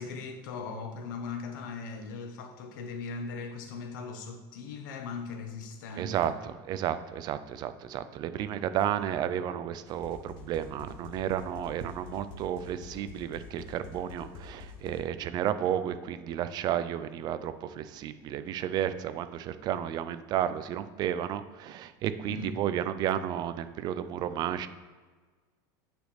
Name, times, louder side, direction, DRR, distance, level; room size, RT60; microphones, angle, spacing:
voice 1, 0.0-6.4 22.2-22.6, left 4 dB, 80° left, 6 dB, 1.0 m, -39 dB
voice 2, 6.0-24.7, right 10 dB, 40° right, 12 dB, 0.5 m, -32 dB
sound 1, 9.9-15.0, left 5 dB, 50° left, 1.2 m, -47 dB
8.8 x 5.1 x 3.3 m, 1.4 s
supercardioid pair, 130°, 10 cm